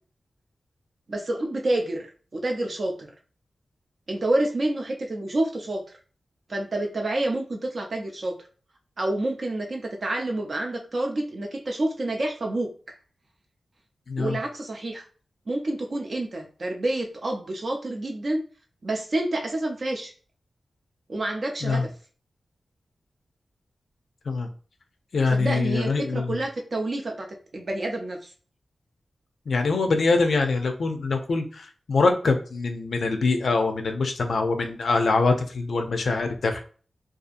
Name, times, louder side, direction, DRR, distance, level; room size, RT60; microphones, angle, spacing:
voice 1, 1.1-3.1 4.1-5.8 6.5-8.3 9.0-12.7 14.2-15.1 15.5-18.4 18.8-20.1 21.1-21.9 25.3-28.3, right 1 dB, 45° right, 2 dB, 0.4 m, -28 dB
voice 2, 14.1-14.4 21.6-21.8 24.3-24.5 25.1-26.4 29.5-36.6, left 3 dB, 70° left, 5 dB, 0.4 m, -24 dB
2.7 x 2.4 x 2.4 m, 0.39 s
wide cardioid pair, 145°, 0 cm